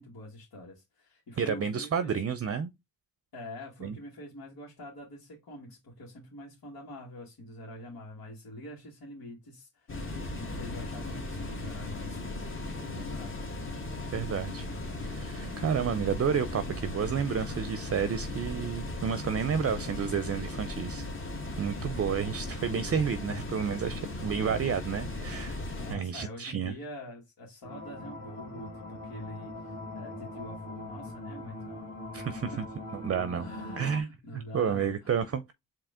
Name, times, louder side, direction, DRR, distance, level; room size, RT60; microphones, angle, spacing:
voice 1, 0.0-2.2 3.3-10.1 10.4-13.4 25.8-31.9 32.5-32.7 33.4-35.4, left 1 dB, 85° left, 1.8 m, -45 dB
voice 2, 1.4-2.7 3.8-3.9 14.1-14.7 15.0-21.1 21.6-25.6 25.9-26.7 32.1-32.6 32.9-33.5 33.8-34.1 34.3-35.5, right 7 dB, 45° right, 0.5 m, -30 dB
sound 1, 9.9-25.9, left 2 dB, 35° left, 1.5 m, -37 dB
sound 2, 27.6-34.0, left 2 dB, 60° left, 2.6 m, -41 dB
4.9 x 2.9 x 3.6 m
cardioid pair, 80°, 35 cm